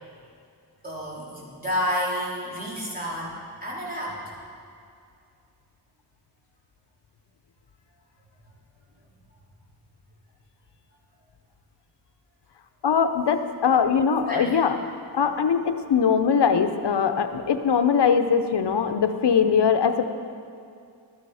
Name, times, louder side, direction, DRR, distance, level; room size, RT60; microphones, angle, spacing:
voice 1, 0.8-3.4 3.6-4.2 14.3-14.6, equal, 20° right, -6 dB, 3.3 m, -30 dB
voice 2, 12.8-14.8 15.1-20.1, left 6 dB, 75° left, 8 dB, 0.8 m, -21 dB
12.0 x 10.5 x 4.8 m, 2.4 s
wide cardioid pair, 75°, 41 cm